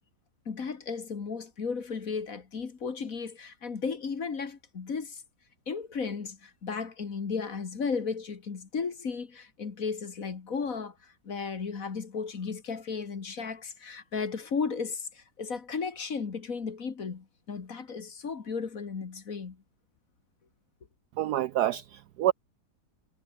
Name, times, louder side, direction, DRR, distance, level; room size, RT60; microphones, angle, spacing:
voice 1, 0.5-5.2 5.7-19.6, left 5 dB, 45° left, 2.1 m, -35 dB
voice 2, 21.2-22.3, right 13 dB, 75° right, 0.9 m, -27 dB
omnidirectional pair, 2.1 m